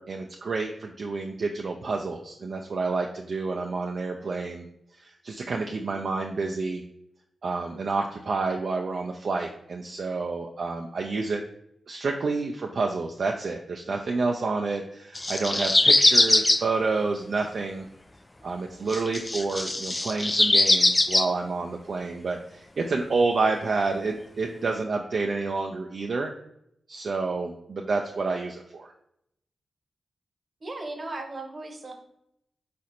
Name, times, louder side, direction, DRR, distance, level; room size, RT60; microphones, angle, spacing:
voice 1, 0.0-4.7 5.0-6.8 7.4-11.4 11.9-17.9 18.4-26.3 26.9-28.9, right 3 dB, 65° right, 2 dB, 0.4 m, -29 dB
sound 1, 15.2-16.6 18.9-21.3, left 2 dB, 25° left, 0.3 m, -21 dB
voice 2, 30.6-31.9, right 2 dB, 50° right, 4 dB, 0.9 m, -36 dB
4.2 x 4.1 x 2.5 m, 0.76 s
supercardioid pair, 45°, 0 cm